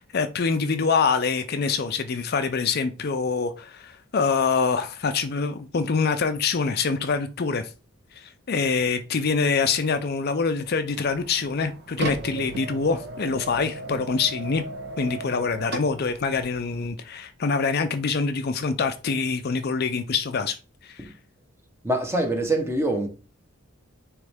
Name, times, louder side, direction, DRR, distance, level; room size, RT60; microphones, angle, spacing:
voice 1, 0.0-7.7 8.2-14.6 15.0-20.6 20.8-21.1, left 5 dB, 45° left, 0.5 m, -25 dB
sound 1, 10.9-16.9, right 2 dB, 50° right, 1.0 m, -36 dB
voice 2, 21.8-23.1, right 1 dB, 10° right, 1.0 m, -24 dB
9.4 x 3.2 x 3.5 m
head